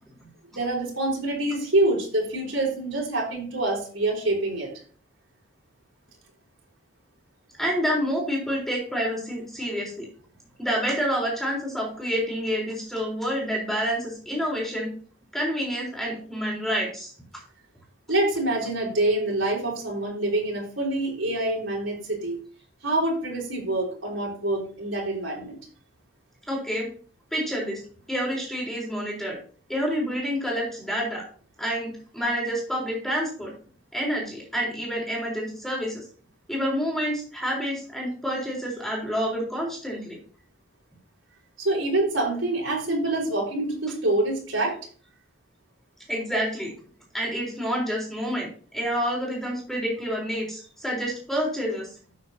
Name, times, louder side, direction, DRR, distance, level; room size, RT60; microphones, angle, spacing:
voice 1, 0.5-4.7 18.1-22.4 22.8-25.6 41.6-44.8, right 2 dB, 90° right, -2 dB, 4.2 m, -26 dB
voice 2, 7.6-10.1 10.6-14.9 15.3-17.1 26.5-26.9 27.3-27.8 28.1-29.4 29.7-31.2 31.6-33.5 33.9-36.0 36.5-40.2 46.1-46.7 47.1-51.9, equal, ahead, -2 dB, 4.1 m, -28 dB
13.0 x 7.0 x 2.9 m, 0.42 s
head